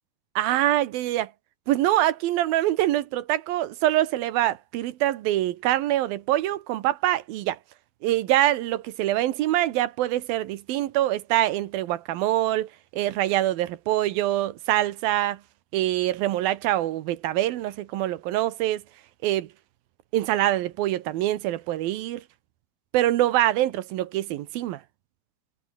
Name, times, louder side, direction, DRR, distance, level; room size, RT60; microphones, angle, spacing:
voice 1, 0.4-1.3 1.7-7.6 8.0-15.4 15.7-18.8 19.2-19.5 20.1-22.2 22.9-24.8, right 14 dB, 70° right, 2.6 m, -24 dB
omnidirectional pair, 4.8 m